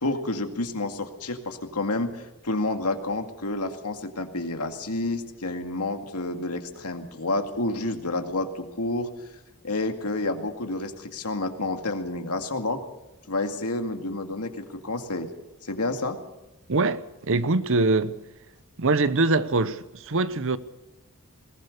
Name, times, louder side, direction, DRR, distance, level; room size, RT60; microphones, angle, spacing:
voice 1, 0.0-9.1 9.6-12.8 13.3-15.3 15.6-16.2, left 2 dB, 90° left, 2.2 m, -29 dB
voice 2, 16.7-18.2 18.8-20.6, right 3 dB, 60° right, 0.9 m, -23 dB
21.0 x 19.0 x 6.6 m
head